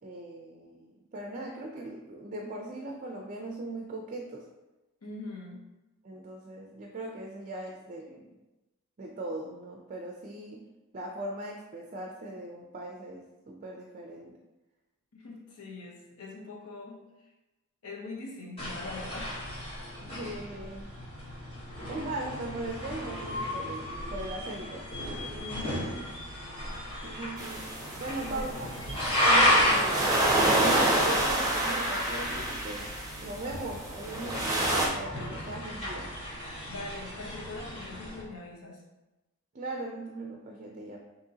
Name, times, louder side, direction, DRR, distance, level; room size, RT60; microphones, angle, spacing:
voice 1, 0.0-4.4 6.0-8.3 9.0-10.6 10.9-14.3 20.0-21.0 21.9-24.8 27.0-27.7 28.0-28.7 29.2-33.0 33.2-36.1 39.5-41.0, right 2 dB, 35° right, 1 dB, 0.5 m, -39 dB
voice 2, 5.0-5.6 15.1-17.3 17.8-19.4 25.4-26.0 28.2-28.5 36.7-38.8, left 3 dB, 80° left, -2 dB, 0.9 m, -42 dB
sound 1, 18.6-38.2, equal, 25° left, 1.1 m, -33 dB
sound 2, 27.4-34.9, right 1 dB, 15° right, 0.8 m, -28 dB
6.4 x 2.9 x 2.8 m, 1.0 s
head